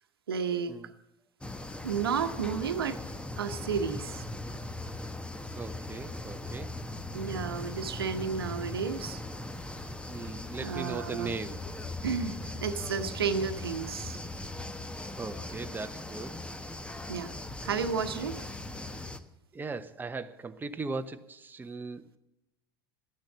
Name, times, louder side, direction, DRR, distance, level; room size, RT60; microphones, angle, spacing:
voice 1, 0.3-0.7 1.8-3.0 3.4-4.2 7.1-9.2 10.6-11.3 12.0-14.2 17.1-17.3 17.6-18.4, right 6 dB, 85° right, 9 dB, 1.1 m, -32 dB
sound 1, 1.4-19.2, left 2 dB, 10° left, 1.1 m, -39 dB
voice 2, 5.5-6.7 10.1-11.6 15.1-16.4 19.5-22.2, right 3 dB, 15° right, 8 dB, 0.9 m, -38 dB
13.5 x 10.5 x 7.3 m, 0.92 s
hypercardioid pair, 80°, 12 cm